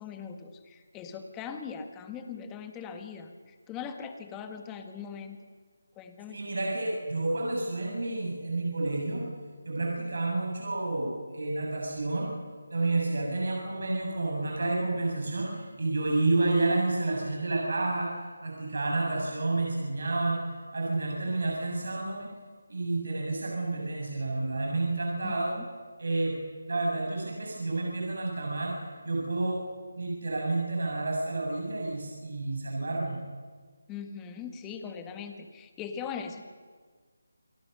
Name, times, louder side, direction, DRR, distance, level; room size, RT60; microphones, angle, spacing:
voice 1, 0.0-5.4 6.0-6.4 25.2-25.7 33.9-36.5, left 6 dB, 10° left, 6 dB, 1.6 m, -40 dB
voice 2, 6.3-9.2 9.7-12.3 12.7-20.4 20.7-22.3 22.7-25.5 26.0-26.4 26.7-29.6 30.0-33.2, right 2 dB, 65° right, -1 dB, 7.3 m, -30 dB
28.5 x 22.5 x 6.8 m, 1.5 s
figure-of-eight pair, 170°, 0 cm